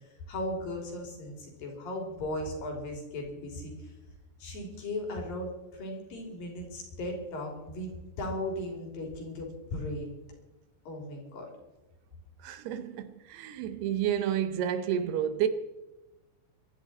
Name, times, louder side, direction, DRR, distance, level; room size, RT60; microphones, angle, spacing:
voice 1, 0.3-3.9 4.4-7.9 8.2-10.1 10.9-11.5, left 1 dB, 55° left, 4.7 m, -37 dB
voice 2, 12.4-15.5, right 10 dB, 75° right, 2.8 m, -30 dB
24.0 x 11.0 x 4.3 m
omnidirectional pair, 5.0 m